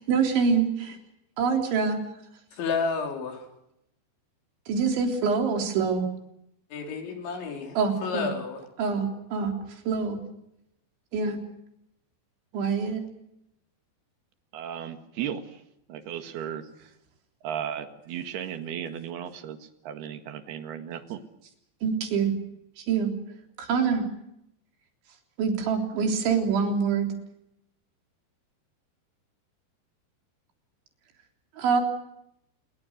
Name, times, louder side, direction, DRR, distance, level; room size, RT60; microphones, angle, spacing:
voice 1, 0.1-1.0 1.4-2.0 4.7-6.0 7.8-8.3 8.8-9.5 9.9-10.2 11.1-11.4 12.5-13.0 21.8-22.3 22.8-23.1 23.6-24.0 25.4-27.1 31.6-31.8, right 5 dB, 90° right, 4 dB, 5.9 m, -25 dB
voice 2, 2.6-3.4 6.7-8.6, left 5 dB, 90° left, 3 dB, 6.7 m, -31 dB
voice 3, 14.5-15.6 15.9-16.9 17.4-21.2, right 9 dB, 65° right, 8 dB, 3.5 m, -35 dB
28.0 x 22.0 x 6.6 m, 0.80 s
omnidirectional pair, 5.1 m